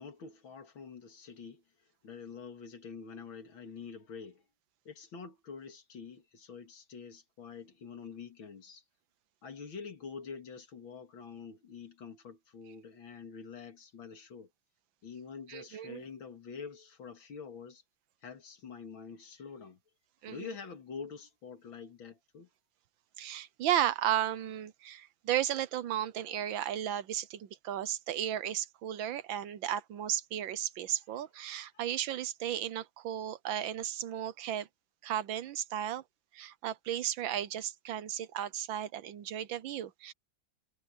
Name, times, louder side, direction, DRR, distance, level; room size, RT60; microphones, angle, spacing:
voice 1, 0.0-1.6 2.0-4.4 4.8-8.8 9.4-14.5 15.0-17.8 18.2-19.8 20.3-22.5 30.9-31.2, left 5 dB, 70° left, 2.8 m, -46 dB
voice 2, 15.5-16.0 20.2-20.5 23.2-34.7 35.0-36.0 36.3-40.1, right 11 dB, 75° right, 1.5 m, -34 dB
omnidirectional pair, 2.2 m